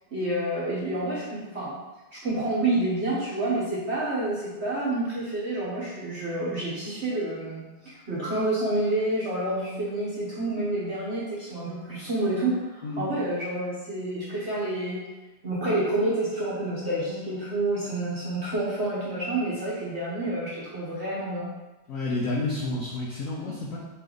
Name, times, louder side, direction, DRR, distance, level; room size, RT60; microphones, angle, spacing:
voice 1, 0.1-1.7 2.1-15.0 15.4-21.5, right 1 dB, 50° right, -7 dB, 0.8 m, -28 dB
voice 2, 21.9-23.8, left 2 dB, 90° left, -4 dB, 0.7 m, -30 dB
4.1 x 3.3 x 3.8 m, 1.1 s
omnidirectional pair, 2.2 m